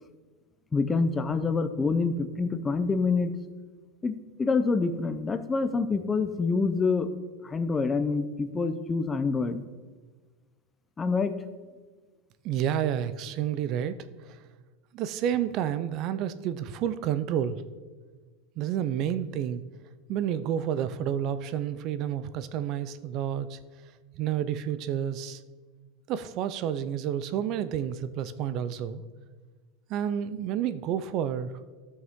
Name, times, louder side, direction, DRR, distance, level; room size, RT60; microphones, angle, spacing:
voice 1, 0.7-3.3 4.0-7.1 7.4-9.6 11.0-11.3, left 4 dB, 15° left, 10 dB, 0.5 m, -26 dB
voice 2, 12.4-14.0 14.3-14.4 14.9-17.6 18.6-19.6 20.1-23.6 24.2-25.4 26.1-29.0 29.9-31.5, right 9 dB, 40° right, 13 dB, 0.4 m, -30 dB
13.5 x 6.4 x 3.6 m, 1.4 s
supercardioid pair, 160°, 0 cm